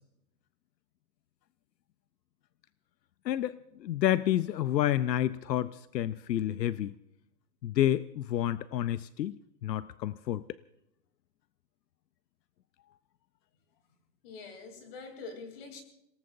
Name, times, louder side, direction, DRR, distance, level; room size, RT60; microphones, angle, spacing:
voice 1, 3.2-6.9 7.6-10.4, left 12 dB, 85° left, 15 dB, 0.7 m, -29 dB
voice 2, 14.2-15.8, left 4 dB, 35° left, 5 dB, 3.2 m, -44 dB
29.5 x 18.0 x 2.6 m, 0.81 s
hypercardioid pair, 165°, 49 cm